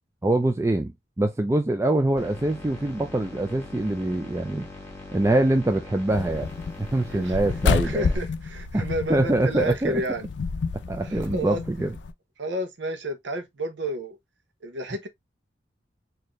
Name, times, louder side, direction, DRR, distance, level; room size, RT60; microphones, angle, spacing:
voice 1, 0.2-0.9 1.2-4.7 5.1-6.5 6.8-8.1 8.7-10.0 10.9-12.0, right 2 dB, 15° right, 0.4 m, -24 dB
sound 1, 2.2-8.2, left 2 dB, 10° left, 1.5 m, -41 dB
sound 2, 6.1-12.1, left 4 dB, 75° left, 0.5 m, -29 dB
voice 2, 7.1-7.4 7.8-10.3 11.0-11.6 12.4-14.2 14.6-15.1, right 1 dB, 75° right, 0.9 m, -31 dB
4.2 x 2.7 x 3.0 m
head